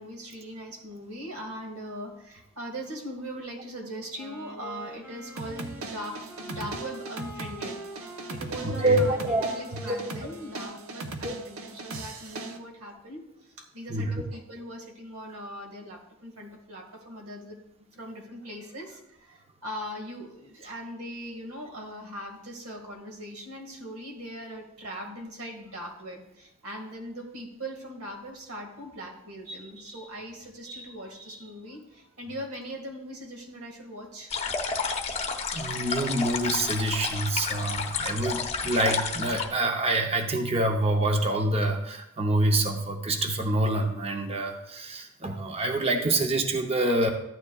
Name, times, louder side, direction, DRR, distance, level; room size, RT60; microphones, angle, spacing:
voice 1, 0.0-7.8 8.3-17.6 17.9-34.3, equal, 90° right, 2 dB, 1.9 m, -40 dB
Wind instrument woodwind instrument, 4.1-11.2, equal, 10° right, 3.4 m, -45 dB
sound 1, 5.4-12.6, right 3 dB, 70° right, 0.8 m, -39 dB
voice 2, 8.6-9.5 9.9-10.0 11.2-11.3 13.9-14.1 35.5-47.1, right 1 dB, 30° right, 4 dB, 0.7 m, -26 dB
sound 2, 34.3-39.5, left 5 dB, 30° left, 0.8 m, -31 dB
13.5 x 9.3 x 2.3 m, 0.83 s
head